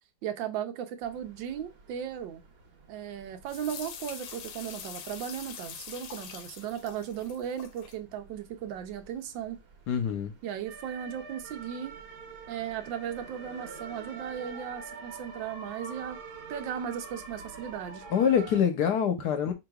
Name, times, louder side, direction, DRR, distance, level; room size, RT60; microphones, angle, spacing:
voice 1, 0.2-2.4 2.9-9.6 10.4-11.9 12.5-16.2 16.5-18.0, right 9 dB, 85° right, 1.4 m, -36 dB
sound 1, 1.0-18.6, right 4 dB, 65° right, 1.6 m, -47 dB
sound 2, 3.5-8.0, left 7 dB, 90° left, 1.4 m, -44 dB
voice 2, 9.9-10.3 18.1-19.5, left 8 dB, 65° left, 1.3 m, -25 dB
5.0 x 3.3 x 2.3 m
omnidirectional pair, 2.0 m